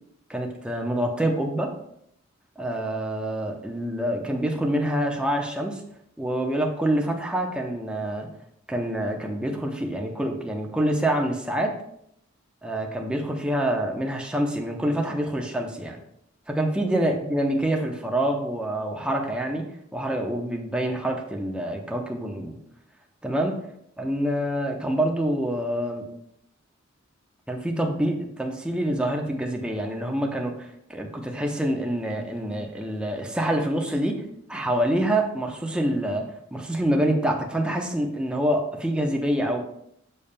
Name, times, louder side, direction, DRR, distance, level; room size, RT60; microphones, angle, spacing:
voice 1, 0.3-1.7 2.6-5.8 6.2-8.3 8.7-11.7 12.6-16.0 16.5-19.7 19.9-22.6 23.2-23.6 24.0-26.1 27.5-34.2 34.5-36.2 36.5-39.6, right 1 dB, 5° right, 1 dB, 0.8 m, -26 dB
7.0 x 6.9 x 2.2 m, 0.73 s
head